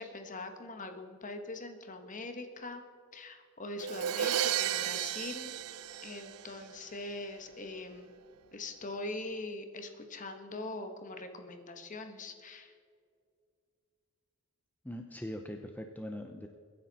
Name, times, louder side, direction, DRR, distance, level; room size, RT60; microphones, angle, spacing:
voice 1, 0.0-2.8 3.1-5.5 6.0-8.1 8.5-12.8, left 2 dB, 35° left, 6 dB, 1.4 m, -42 dB
Crash cymbal, 3.8-6.8, right 11 dB, 90° right, 0.5 m, -33 dB
voice 2, 14.8-16.5, left 1 dB, 5° left, 5 dB, 0.6 m, -41 dB
23.0 x 10.5 x 4.2 m, 2.2 s
head